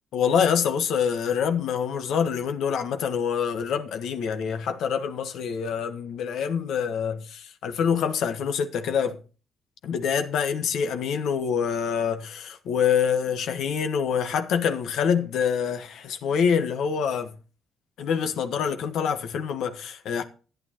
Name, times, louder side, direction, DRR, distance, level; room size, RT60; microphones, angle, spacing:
voice 1, 0.1-9.2 9.8-17.4 18.0-20.2, left 7 dB, 80° left, 1.3 m, -26 dB
13.5 x 9.2 x 2.9 m
cardioid pair, 90°, 0 cm